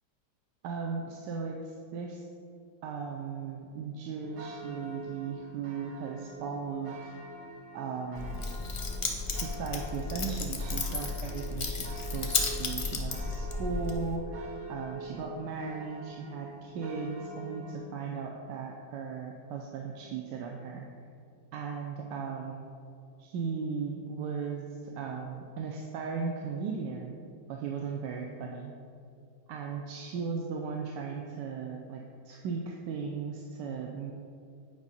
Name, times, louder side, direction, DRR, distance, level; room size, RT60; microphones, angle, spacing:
voice 1, 0.6-2.2 2.8-7.1 7.7-8.4 9.3-20.9 21.5-22.7 23.2-27.1 27.5-28.7 29.5-34.1, right 5 dB, 80° right, 1 dB, 1.2 m, -37 dB
sound 1, 4.2-17.8, right 2 dB, 55° right, 0.8 m, -45 dB
Keys jangling, 8.1-14.2, left 4 dB, 50° left, 0.6 m, -33 dB
8.6 x 4.8 x 4.1 m, 2.5 s
omnidirectional pair, 1.9 m